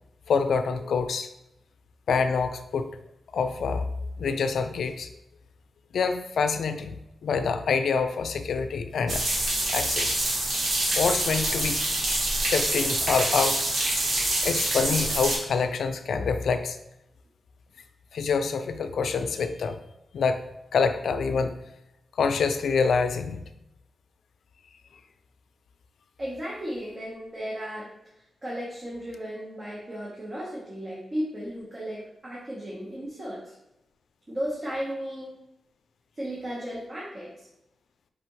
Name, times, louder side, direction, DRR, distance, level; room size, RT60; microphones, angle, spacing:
voice 1, 0.3-1.3 2.1-2.9 3.3-3.9 4.2-5.1 5.9-6.9 7.2-9.2 9.7-10.2 10.9-11.8 12.5-13.6 14.4-16.8 18.1-19.8 20.1-20.4 20.7-21.5 22.2-23.4, left 5 dB, 80° left, 9 dB, 0.4 m, -26 dB
sound 1, 9.1-15.4, right 1 dB, 70° right, 1.3 m, -26 dB
voice 2, 26.2-27.9 28.1-33.5 34.3-35.4 36.2-37.5, equal, 35° right, -6 dB, 1.2 m, -35 dB
5.0 x 3.3 x 3.1 m, 0.88 s
cardioid pair, 80°, 0 cm